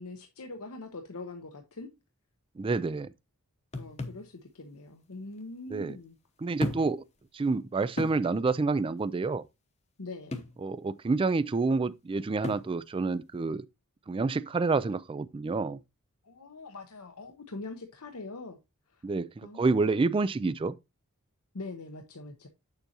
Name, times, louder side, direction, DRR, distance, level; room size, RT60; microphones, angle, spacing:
voice 1, 0.0-1.9 3.7-6.2 10.0-10.4 16.2-18.6 18.9-19.0 19.4-19.9 21.5-22.5, left 2 dB, 80° left, 0.9 m, -43 dB
voice 2, 2.6-3.1 5.7-6.0 6.4-7.0 7.3-9.4 10.6-13.6 14.1-15.8 19.0-20.7, right 3 dB, 25° right, 0.3 m, -28 dB
sound 1, 3.7-4.3 5.4-5.5 6.6-7.0 7.4-7.5 8.0-8.2 10.3-10.6 12.4-12.7, left 2 dB, 30° left, 0.9 m, -35 dB
7.8 x 6.9 x 2.9 m
head